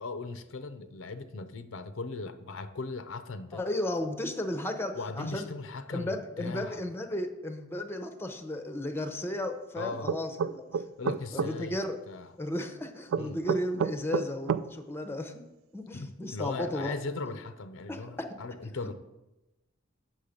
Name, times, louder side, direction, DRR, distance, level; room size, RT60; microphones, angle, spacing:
voice 1, 0.0-3.6 4.9-6.8 9.8-10.1 11.0-12.4 13.2-13.4 15.9-18.9, left 3 dB, 70° left, 11 dB, 0.6 m, -38 dB
voice 2, 3.5-5.5 5.9-12.0 12.4-15.4 15.7-16.9 17.9-18.1 18.6-18.7, left 1 dB, 10° left, 7 dB, 0.6 m, -34 dB
sound 1, 10.1-11.5 13.1-14.7, right 7 dB, 70° right, 0.3 m, -29 dB
8.2 x 6.3 x 5.1 m, 1.0 s
head